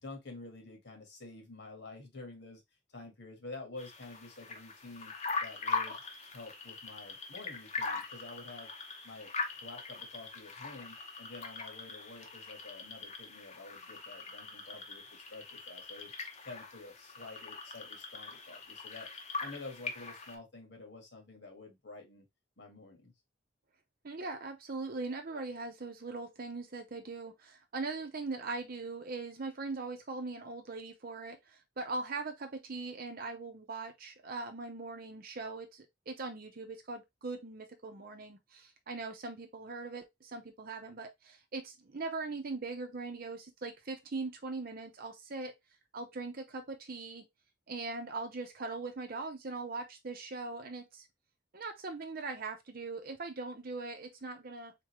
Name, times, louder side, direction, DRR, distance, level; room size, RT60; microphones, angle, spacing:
voice 1, 0.0-2.6 2.9-5.1 5.4-6.0 6.3-8.7 9.0-9.3 9.6-16.1 16.4-19.1 19.4-22.2 22.6-23.1, left 3 dB, 65° left, 1.6 m, -49 dB
sound 1, 3.8-20.4, left 4 dB, 35° left, 0.9 m, -41 dB
voice 2, 24.0-45.5 45.9-47.2 47.7-51.1 51.5-54.7, right 3 dB, 50° right, 0.7 m, -40 dB
3.7 x 3.7 x 3.0 m
head